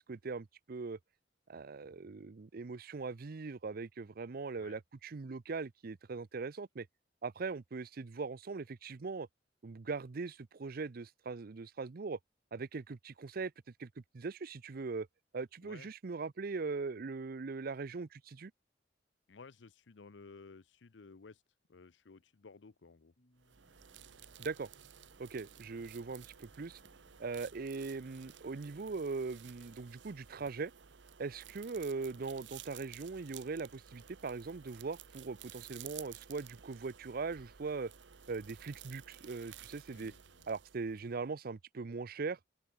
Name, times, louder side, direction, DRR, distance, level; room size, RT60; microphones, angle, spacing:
voice 1, 0.1-1.0 1.5-6.9 7.2-9.3 9.6-12.2 12.5-13.5 13.8-15.1 15.3-18.5 24.4-24.7 25.2-26.8 27.2-30.7 31.2-37.9 38.3-40.1 40.5-42.4, right 4 dB, 55° right, 0.6 m, -40 dB
voice 2, 19.3-21.4 21.7-23.1 39.9-40.5, left 4 dB, 90° left, 0.7 m, -55 dB
sound 1, 23.2-29.6, left 1 dB, 50° left, 3.2 m, -72 dB
sound 2, 23.4-41.2, right 9 dB, 85° right, 0.9 m, -55 dB
open air
head